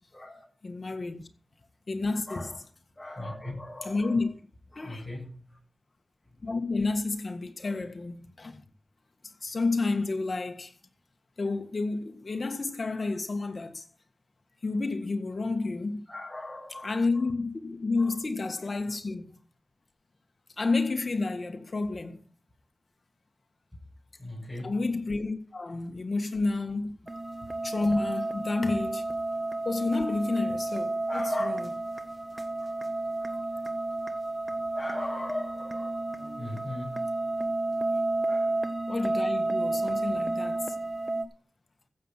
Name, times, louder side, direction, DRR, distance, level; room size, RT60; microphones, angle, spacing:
voice 1, 0.1-0.5 1.2-1.3 2.3-2.6 3.0-4.2 4.7-5.6 6.3-6.4 7.6-7.8 16.1-17.2 18.0-18.1 18.6-18.7 24.2-24.8 31.1-31.6 34.5-37.2 38.3-38.6 39.9-40.1, left 1 dB, 15° left, 7.9 m, -39 dB
voice 2, 0.6-1.3 1.9-2.6 3.8-4.3 4.7-5.0 6.4-8.6 9.2-10.7 11.4-13.8 14.6-16.0 16.8-19.4 20.6-22.2 24.6-27.0 27.6-29.1 29.6-31.7 32.6-32.7 33.3-33.4 38.9-40.7, left 3 dB, 50° left, 1.6 m, -30 dB
sound 1, 27.1-41.2, right 2 dB, 30° right, 1.4 m, -31 dB
14.5 x 7.5 x 5.8 m
wide cardioid pair, 75°, 0 cm